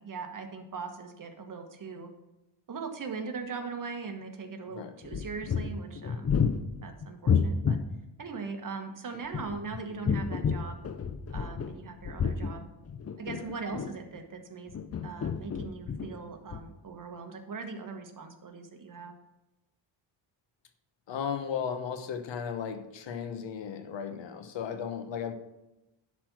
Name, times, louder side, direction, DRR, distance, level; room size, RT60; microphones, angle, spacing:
voice 1, 0.0-2.1 2.7-6.3 6.8-7.8 8.2-10.8 11.3-12.7 13.2-14.8 15.0-19.2, right 4 dB, 45° right, 5 dB, 1.3 m, -40 dB
sound 1, 5.0-7.9 9.1-11.8 12.0-14.2 14.7-16.2 16.5-16.6, left 6 dB, 35° left, 0.6 m, -30 dB
voice 2, 21.1-25.3, left 7 dB, 70° left, 8 dB, 1.1 m, -35 dB
10.5 x 4.2 x 6.0 m, 0.94 s
cardioid pair, 85°, 46 cm